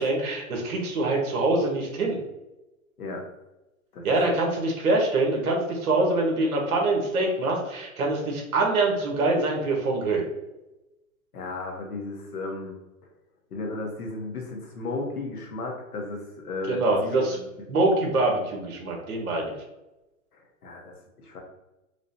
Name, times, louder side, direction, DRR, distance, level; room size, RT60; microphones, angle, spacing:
voice 1, 0.0-2.2 4.0-10.2 16.7-17.4 17.7-19.5, right 2 dB, 75° right, 0 dB, 1.4 m, -24 dB
voice 2, 11.3-12.8 13.5-16.8 17.1-17.7 20.3-21.4, left 2 dB, 90° left, 0 dB, 1.2 m, -35 dB
4.7 x 2.1 x 2.8 m, 0.99 s
hypercardioid pair, 125°, 44 cm